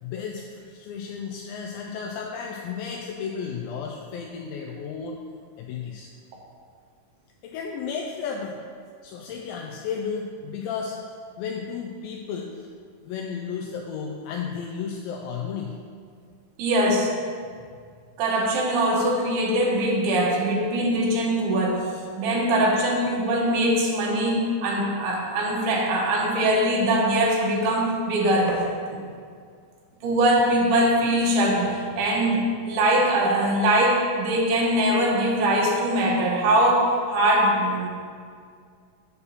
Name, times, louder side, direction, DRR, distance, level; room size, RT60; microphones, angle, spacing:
voice 1, 0.0-5.2 5.6-6.1 7.4-8.6 9.0-11.0 11.4-12.7 13.0-15.8, left 6 dB, 85° left, 1 dB, 2.3 m, -33 dB
voice 2, 16.6-17.1 18.2-21.9 22.2-28.6 28.9-29.0 30.0-37.9, right 1 dB, 65° right, -2 dB, 2.5 m, -22 dB
6.8 x 4.5 x 6.8 m, 2.1 s
omnidirectional pair, 4.2 m